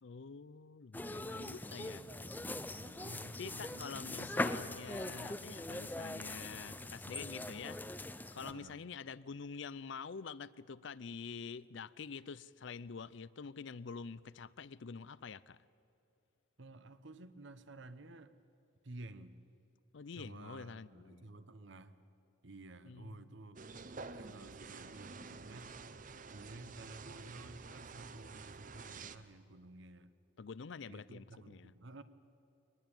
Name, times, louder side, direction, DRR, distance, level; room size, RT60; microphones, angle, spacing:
voice 1, 0.0-2.0 3.4-7.8 8.3-15.6 19.9-21.3 22.9-23.4 30.4-31.7, left 5 dB, 60° left, 0.5 m, -47 dB
sound 1, 0.9-8.5, left 1 dB, 10° left, 0.5 m, -41 dB
voice 2, 1.5-4.5 8.5-8.8 16.6-18.3 18.8-19.4 20.2-22.0 22.4-23.6 24.1-25.8 26.3-30.1 30.9-32.0, right 2 dB, 60° right, 1.0 m, -53 dB
sound 2, 23.6-29.2, right 4 dB, 40° right, 0.7 m, -49 dB
23.0 x 19.5 x 8.9 m
head